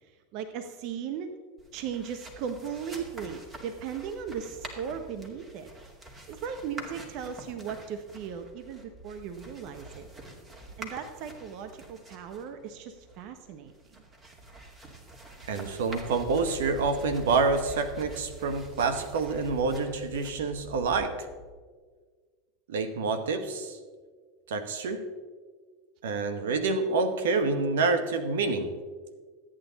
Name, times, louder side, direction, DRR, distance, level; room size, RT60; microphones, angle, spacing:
voice 1, 0.1-1.3 1.7-5.7 6.3-10.1 10.8-14.0, right 7 dB, 60° right, 8 dB, 0.8 m, -37 dB
sound 1, 1.6-21.5, right 2 dB, 20° right, 2.3 m, -46 dB
voice 2, 15.5-21.1 22.7-23.8 24.5-25.1 26.0-28.7, right 4 dB, 80° right, 9 dB, 1.1 m, -27 dB
13.5 x 9.0 x 4.0 m, 1.5 s
hypercardioid pair, 95°, 0 cm